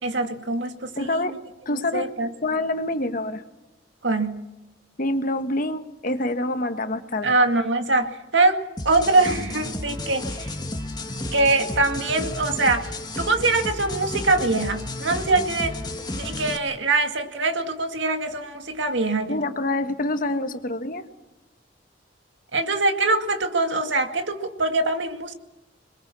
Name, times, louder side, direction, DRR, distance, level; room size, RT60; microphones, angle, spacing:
voice 1, 0.0-1.4 1.7-2.3 4.0-4.5 7.2-10.5 11.3-12.9 13.2-15.8 16.1-19.3 22.5-25.3, right 2 dB, 80° right, 6 dB, 2.2 m, -23 dB
voice 2, 1.0-1.3 1.6-2.1 2.4-3.4 5.0-7.3 19.3-21.0, left 1 dB, 50° left, 8 dB, 1.5 m, -26 dB
sound 1, 8.8-16.6, left 1 dB, 20° left, 1.8 m, -32 dB
26.5 x 22.0 x 6.3 m, 1.0 s
head